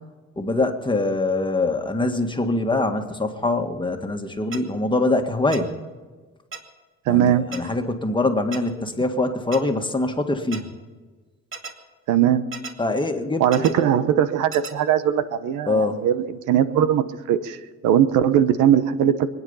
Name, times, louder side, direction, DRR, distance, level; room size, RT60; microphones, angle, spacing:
voice 1, 0.4-5.7 7.1-10.7 12.8-13.8 15.7-16.0, left 2 dB, 15° left, 5 dB, 1.8 m, -24 dB
sound 1, 4.5-4.6 5.5-5.6 6.5-6.6 7.5-7.6 8.5-8.6 9.5-9.6 10.5-10.6 11.5-11.7 12.5-12.7 13.5-13.7 14.5-14.7, right 5 dB, 45° right, 2.4 m, -34 dB
voice 2, 7.1-7.4 12.1-12.4 13.4-17.6 17.8-19.3, right 10 dB, 90° right, 12 dB, 1.0 m, -20 dB
25.0 x 9.6 x 5.6 m, 1.3 s
cardioid pair, 90°, 30 cm